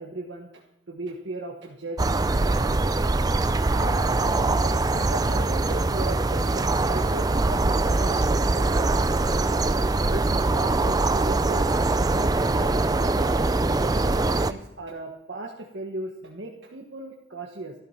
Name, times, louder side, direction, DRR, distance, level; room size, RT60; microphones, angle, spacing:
voice 1, 0.0-2.9 3.7-8.9 9.4-9.7 10.1-11.7 11.9-13.3 13.7-17.7, right 2 dB, 60° right, -1 dB, 1.3 m, -37 dB
sound 1, 2.0-14.5, right 2 dB, 20° right, 0.4 m, -23 dB
13.0 x 11.0 x 5.7 m, 0.81 s
head